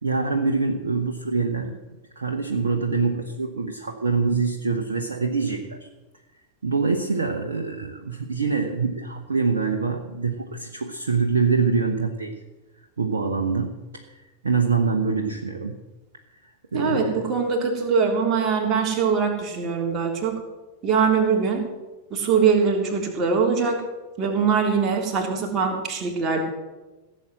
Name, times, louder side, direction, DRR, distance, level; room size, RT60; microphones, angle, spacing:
voice 1, 0.0-1.8 2.2-5.9 6.6-12.3 13.0-15.8 16.7-17.3, right 4 dB, 70° right, 3 dB, 1.1 m, -25 dB
voice 2, 16.7-20.4 20.8-21.7 22.1-23.8 24.2-26.4, right 5 dB, 30° right, 1 dB, 3.3 m, -22 dB
16.5 x 7.8 x 7.7 m, 1.1 s
figure-of-eight pair, 90°, 0 cm